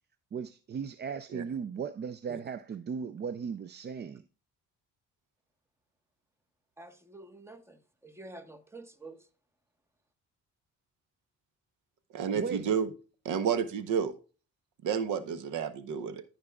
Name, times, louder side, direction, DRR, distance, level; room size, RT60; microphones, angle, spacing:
voice 1, 0.3-4.2 12.3-12.7, right 6 dB, 35° right, 0.4 m, -37 dB
voice 2, 6.8-9.3, right 2 dB, 10° right, 1.2 m, -49 dB
voice 3, 12.1-12.9 13.2-14.1 14.8-16.2, right 7 dB, 80° right, 0.9 m, -30 dB
14.5 x 5.3 x 2.3 m
cardioid pair, 90°, 30 cm